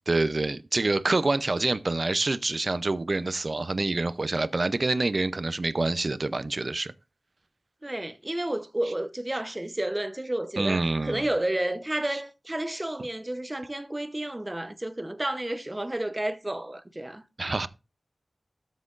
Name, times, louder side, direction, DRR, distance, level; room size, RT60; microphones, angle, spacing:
voice 1, 0.1-6.9 10.6-11.3 12.1-12.2 17.4-17.7, right 2 dB, 55° right, 0.5 m, -27 dB
voice 2, 7.8-17.2, right 1 dB, 25° right, 0.8 m, -31 dB
13.0 x 7.4 x 2.5 m
wide cardioid pair, 70°, 0 cm